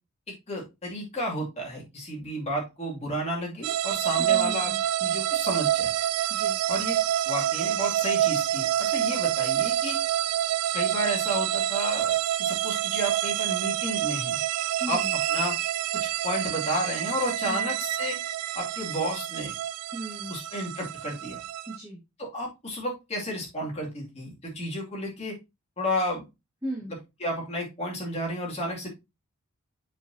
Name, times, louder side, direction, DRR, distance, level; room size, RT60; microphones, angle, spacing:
voice 1, 0.5-4.7 5.0-5.9 6.7-7.0 7.3-10.0 10.7-14.4 14.9-15.0 15.3-15.5 16.0-18.2 18.5-19.5 20.3-21.4 22.2-25.4 25.8-26.2 27.2-28.9, equal, 30° left, -3 dB, 2.6 m, -32 dB
sound 1, 3.6-21.8, right 12 dB, 90° right, 0.3 m, -27 dB
voice 2, 4.2-4.8 6.3-6.6 14.8-15.2 17.4-17.8 19.9-20.3 21.7-22.0 26.6-27.0, right 1 dB, 15° right, -5 dB, 2.0 m, -37 dB
7.2 x 5.6 x 2.8 m, 0.24 s
head